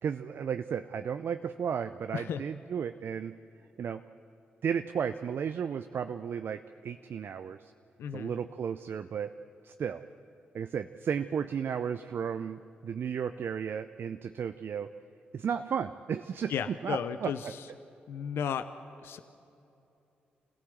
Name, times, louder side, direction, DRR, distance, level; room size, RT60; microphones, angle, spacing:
voice 1, 0.0-3.4 3.8-4.0 4.6-7.7 8.1-9.3 9.6-10.0 10.5-14.9 15.3-17.3, right 7 dB, 65° right, 9 dB, 0.6 m, -34 dB
voice 2, 8.0-8.3 16.5-17.7 18.1-18.7 19.0-19.2, left 8 dB, 75° left, 11 dB, 0.7 m, -34 dB
26.5 x 16.0 x 7.7 m, 2.8 s
hypercardioid pair, 40°, 4 cm